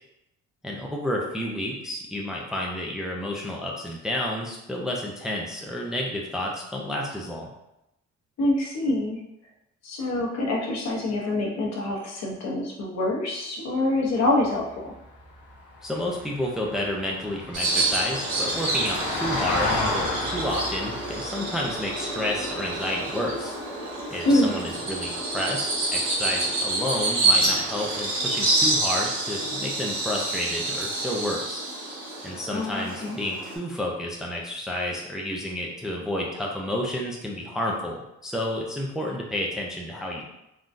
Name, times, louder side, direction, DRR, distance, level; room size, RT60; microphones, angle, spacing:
voice 1, 0.6-7.5 15.8-23.5 24.1-31.6 32.2-40.2, left 1 dB, ahead, -2 dB, 0.4 m, -30 dB
voice 2, 8.4-9.2 9.8-14.9 24.2-24.6 32.5-33.2, left 1 dB, 60° left, -2 dB, 0.9 m, -25 dB
Vehicle, 14.2-24.7 27.0-27.1, left 2 dB, 85° left, 0.9 m, -34 dB
Bird vocalization bird call bird song, 17.5-33.6, right 2 dB, 85° right, 1.5 m, -28 dB
3.7 x 2.2 x 2.5 m, 0.86 s
cardioid pair, 90°, 30 cm